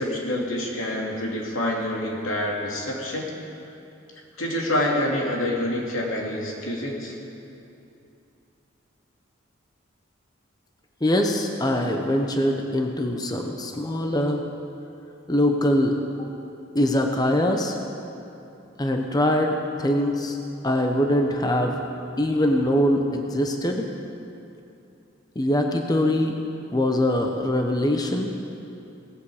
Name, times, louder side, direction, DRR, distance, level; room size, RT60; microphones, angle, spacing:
voice 1, 0.0-3.3 4.4-7.1, left 1 dB, 90° left, -2 dB, 2.8 m, -27 dB
voice 2, 11.0-14.4 15.3-16.3 16.7-17.8 18.8-20.4 20.6-21.8 22.2-23.9 25.3-26.4 26.7-28.3, left 1 dB, 20° left, 3 dB, 0.9 m, -23 dB
17.5 x 16.0 x 5.0 m, 2.7 s
head